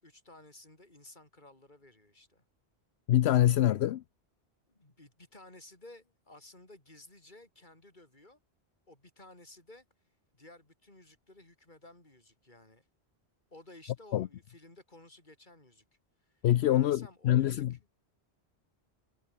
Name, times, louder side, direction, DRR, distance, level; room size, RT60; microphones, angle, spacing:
voice 1, 0.0-2.4 4.7-8.4 8.9-9.9 10.3-12.9 13.5-15.9 16.2-17.8, left 2 dB, 45° left, 5.2 m, -55 dB
voice 2, 3.1-4.0 14.1-14.3 16.4-17.7, left 12 dB, 75° left, 0.8 m, -25 dB
omnidirectional pair, 1.1 m